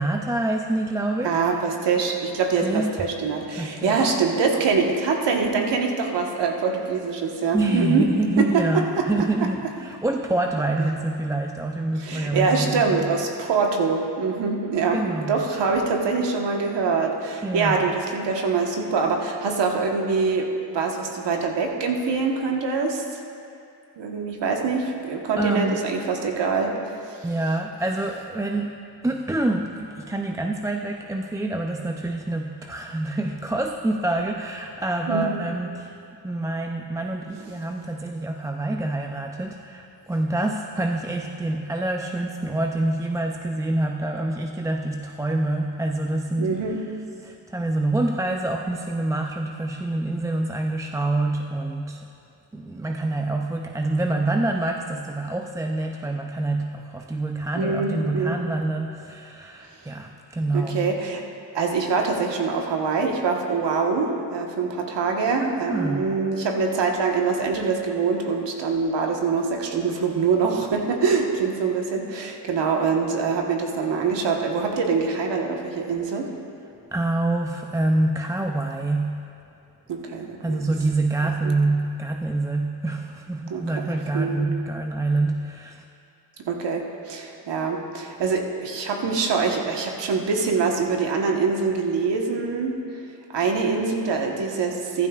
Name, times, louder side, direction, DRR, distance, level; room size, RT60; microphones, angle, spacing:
voice 1, 0.0-1.6 2.6-3.0 3.6-4.0 7.5-13.0 14.9-15.4 17.4-17.8 25.4-25.8 27.2-36.0 36.2-46.8 47.2-52.1 52.5-61.0 65.4-66.1 76.9-79.4 80.4-85.8, right 2 dB, 10° right, 3 dB, 0.4 m, -26 dB
voice 2, 1.2-8.0 8.4-8.6 9.0-9.1 12.0-23.0 24.0-26.7 27.0-27.2 35.1-35.3 46.4-46.8 57.5-58.4 60.5-61.2 61.5-76.3 79.9-80.6 81.4-81.5 83.5-83.6 84.1-84.5 86.5-93.0 93.3-95.1, right 4 dB, 65° right, 1 dB, 1.4 m, -24 dB
14.0 x 12.0 x 2.4 m, 2.5 s
cardioid pair, 70°, 45 cm